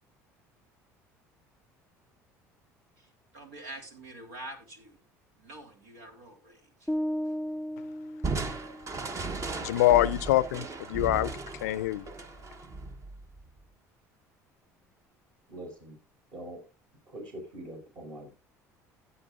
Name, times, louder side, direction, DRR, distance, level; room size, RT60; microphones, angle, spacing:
voice 1, 3.0-5.0 5.4-6.9 7.3-7.4, right 1 dB, 85° right, 3.2 m, -46 dB
sound 1, 6.9-9.1, equal, ahead, 0.4 m, -34 dB
Crushing, 8.2-13.6, right 3 dB, 40° right, 1.2 m, -36 dB
voice 2, 9.6-11.3 11.6-12.1, left 15 dB, 85° left, 0.5 m, -24 dB
voice 3, 15.5-16.0 16.3-16.6 17.1-18.3, right 1 dB, 55° right, 5.5 m, -43 dB
16.5 x 8.1 x 2.4 m
hypercardioid pair, 70°, 8 cm